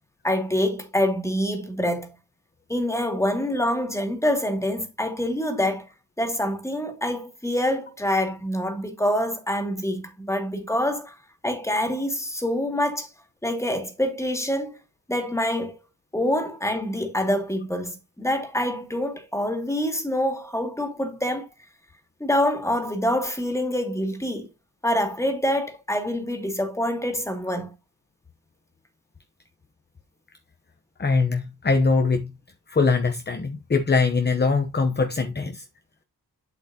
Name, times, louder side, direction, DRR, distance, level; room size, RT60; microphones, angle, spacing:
voice 1, 0.2-2.1 2.7-5.9 6.2-11.1 11.4-13.1 13.4-14.8 15.1-15.7 16.1-21.5 22.2-24.5 24.8-27.7, left 1 dB, 5° left, 2.4 m, -26 dB
voice 2, 31.0-32.3 32.7-35.6, left 4 dB, 25° left, 0.8 m, -22 dB
8.1 x 7.9 x 2.8 m
wide cardioid pair, 115°, 38 cm